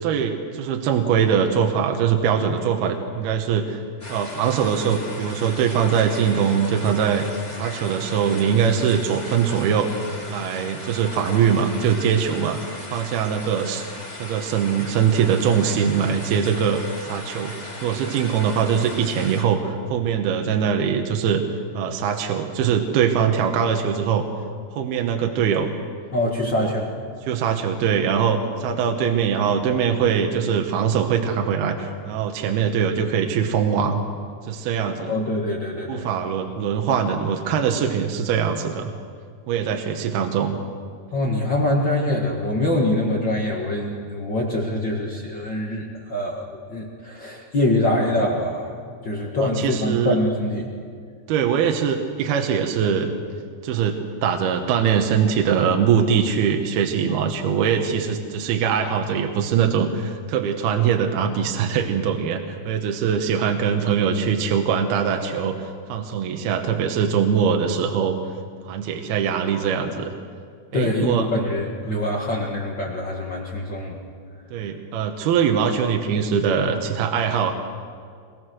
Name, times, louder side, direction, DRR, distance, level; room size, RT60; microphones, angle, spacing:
voice 1, 0.0-3.8 4.1-7.3 7.5-9.9 10.3-12.6 12.9-13.8 14.2-17.5 17.8-21.4 21.7-24.2 24.7-25.7 26.6-26.7 27.3-34.0 34.5-35.1 35.9-38.9 39.5-40.6 49.4-50.2 51.3-53.1 53.6-68.2 68.6-70.1 70.7-71.3 71.9-72.0 74.5-77.5, right 7 dB, 70° right, 4 dB, 2.9 m, -22 dB
sound 1, 4.0-19.4, left 1 dB, 10° left, 2.5 m, -37 dB
voice 2, 26.1-26.9 34.9-36.1 41.1-48.7 49.0-50.7 70.7-74.0, left 1 dB, 50° left, -1 dB, 1.3 m, -24 dB
24.5 x 21.5 x 6.3 m, 2.2 s
omnidirectional pair, 5.0 m